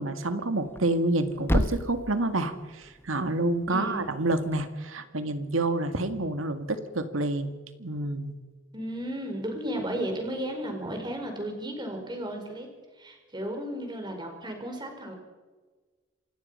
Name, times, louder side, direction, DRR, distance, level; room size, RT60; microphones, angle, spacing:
voice 1, 0.0-7.5 7.8-8.3, right 2 dB, 90° right, 9 dB, 2.1 m, -28 dB
Thump thud, 0.6-4.7, equal, 10° left, 0.9 m, -33 dB
voice 2, 3.7-4.0 8.7-12.7 13.0-15.1, right 1 dB, 20° right, 4 dB, 4.8 m, -34 dB
27.0 x 18.0 x 5.7 m, 1.3 s
head